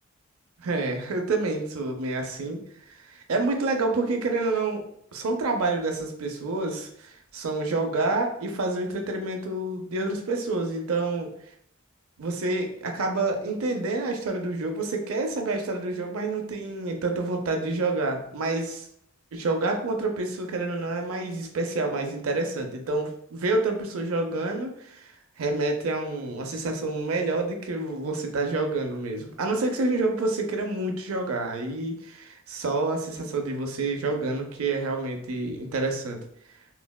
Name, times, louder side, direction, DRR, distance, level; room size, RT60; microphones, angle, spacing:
voice 1, 0.6-2.6 2.9-4.8 5.1-11.3 12.2-18.9 19.3-25.1 25.4-36.2, right 2 dB, 80° right, 4 dB, 0.5 m, -28 dB
3.8 x 2.1 x 2.2 m, 0.68 s
head